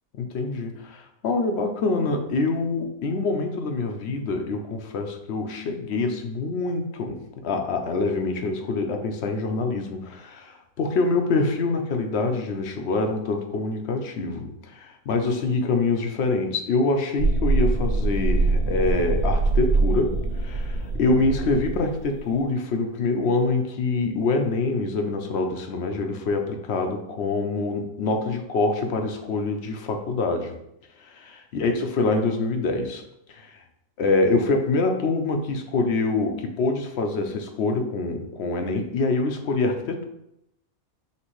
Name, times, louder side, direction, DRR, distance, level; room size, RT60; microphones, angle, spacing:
voice 1, 0.2-20.1 20.4-30.5 31.0-33.0 33.3-33.5 34.0-40.0, left 3 dB, 65° left, 4 dB, 0.7 m, -25 dB
sound 1, 17.2-22.3, right 3 dB, 90° right, 1.5 m, -24 dB
5.5 x 2.6 x 3.0 m, 0.81 s
omnidirectional pair, 1.4 m